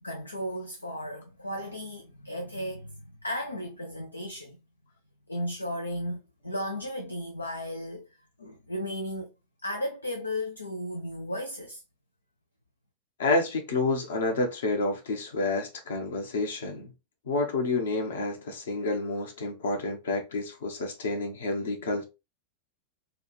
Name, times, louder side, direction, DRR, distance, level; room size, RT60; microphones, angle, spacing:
voice 1, 0.0-4.6 5.3-8.1 8.4-9.3 9.6-11.8, equal, 80° left, 0.5 m, -35 dB
voice 2, 13.2-16.9 17.3-22.0, left 2 dB, 60° left, 1.0 m, -29 dB
4.7 x 2.4 x 3.2 m
figure-of-eight pair, 90°, 0 cm